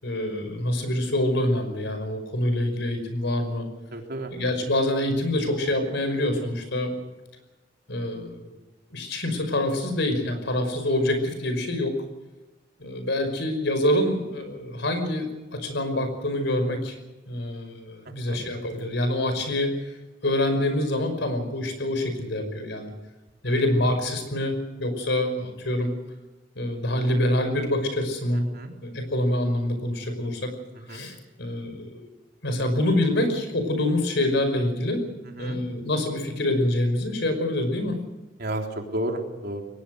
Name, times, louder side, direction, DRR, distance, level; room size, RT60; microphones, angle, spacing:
voice 1, 0.0-3.7 4.3-6.9 7.9-8.5 8.9-12.0 12.8-17.0 17.3-19.7 20.2-22.9 23.4-25.9 26.6-28.5 28.8-30.5 30.9-32.1 32.4-35.1 35.4-38.0, left 1 dB, 65° left, 8 dB, 5.5 m, -26 dB
voice 2, 3.9-4.3 18.1-18.4 23.5-23.6 28.5-28.7 30.9-31.1 35.4-35.6 38.4-38.6 38.9-39.6, right 1 dB, 60° right, 2 dB, 3.8 m, -32 dB
22.5 x 19.0 x 6.5 m, 1.1 s
head